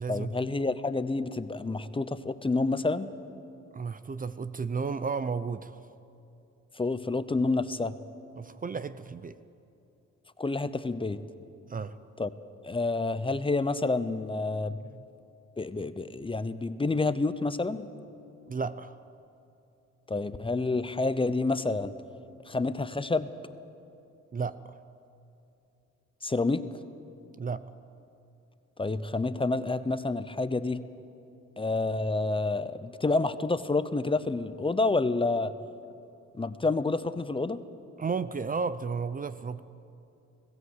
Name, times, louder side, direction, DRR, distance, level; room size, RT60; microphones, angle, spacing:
voice 1, 0.1-3.1 6.8-7.9 10.4-11.2 12.2-12.3 12.6-14.8 15.6-17.9 20.1-21.9 22.5-23.3 26.2-26.6 28.8-30.8 31.6-35.5 36.4-37.6, left 3 dB, 15° left, 13 dB, 0.7 m, -28 dB
voice 2, 3.7-5.8 8.4-9.3 11.7-12.0 14.8-15.0 18.5-18.9 24.3-24.6 27.4-27.6 38.0-39.6, right 5 dB, 30° right, 14 dB, 0.6 m, -33 dB
21.0 x 16.0 x 8.0 m, 2.7 s
cardioid pair, 90°, 30 cm